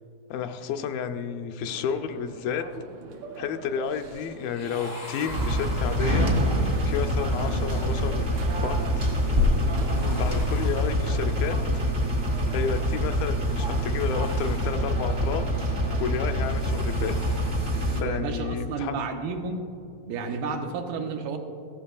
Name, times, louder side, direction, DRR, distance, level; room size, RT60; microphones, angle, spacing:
voice 1, 0.3-2.7 3.4-6.3 6.8-8.2 8.6-8.9 9.9-11.8 12.5-15.5 16.0-17.2 18.0-19.0, left 7 dB, 85° left, 7 dB, 2.3 m, -31 dB
sound 1, 1.6-11.2, right 3 dB, 70° right, 1.8 m, -44 dB
sound 2, 4.4-6.5 9.8-11.4 13.8-15.4 16.7-18.1 20.1-20.4, left 1 dB, 55° left, 0.5 m, -44 dB
sound 3, 5.3-18.0, equal, 45° right, 0.7 m, -25 dB
voice 2, 17.9-19.6 20.1-21.4, right 4 dB, 85° right, 4 dB, 2.7 m, -31 dB
15.0 x 13.0 x 2.3 m, 2.7 s
omnidirectional pair, 4.1 m